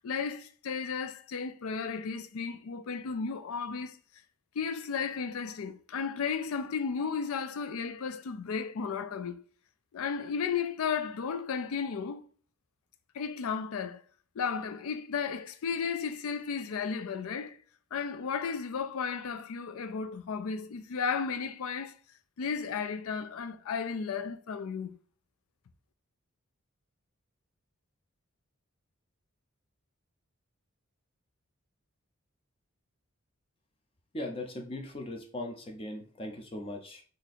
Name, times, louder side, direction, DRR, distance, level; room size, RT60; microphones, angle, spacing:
voice 1, 0.0-4.0 4.6-9.4 9.9-12.3 13.1-14.0 14.4-17.6 17.9-22.0 22.4-25.0, left 6 dB, 80° left, 0.4 m, -34 dB
voice 2, 34.1-37.0, left 1 dB, 25° left, 0.5 m, -39 dB
2.8 x 2.5 x 4.1 m
head